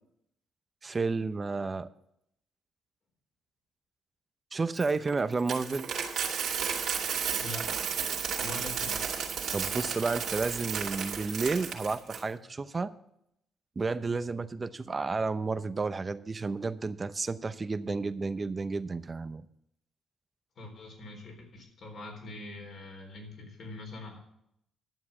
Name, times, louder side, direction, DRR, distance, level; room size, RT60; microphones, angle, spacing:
voice 1, 0.8-1.9 4.5-5.9 9.5-12.9 13.8-19.4, right 4 dB, 30° right, 13 dB, 0.7 m, -31 dB
Coin (dropping), 4.8-12.2, right 7 dB, 70° right, 2.4 m, -33 dB
voice 2, 7.4-7.9 8.4-9.1 20.6-24.2, left 2 dB, 55° left, 3 dB, 3.7 m, -43 dB
11.0 x 7.4 x 7.2 m, 0.76 s
cardioid pair, 90°, 0 cm